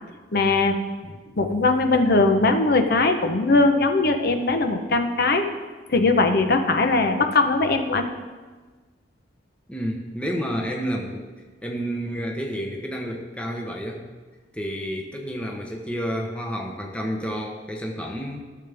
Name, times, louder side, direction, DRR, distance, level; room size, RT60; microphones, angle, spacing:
voice 1, 0.3-0.8 1.4-5.5 5.9-8.1, left 3 dB, 60° left, 6 dB, 0.8 m, -20 dB
voice 2, 9.7-11.3 11.6-14.1 14.5-18.4, equal, 5° left, 1 dB, 0.9 m, -30 dB
16.0 x 6.8 x 3.4 m, 1.4 s
head